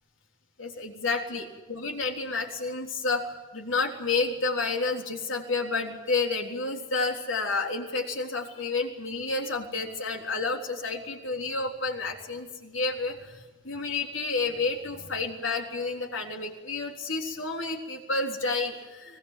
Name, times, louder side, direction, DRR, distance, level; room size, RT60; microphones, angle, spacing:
voice 1, 0.6-19.2, left 3 dB, 80° left, 3 dB, 3.7 m, -30 dB
25.5 x 18.5 x 7.6 m, 1.2 s
head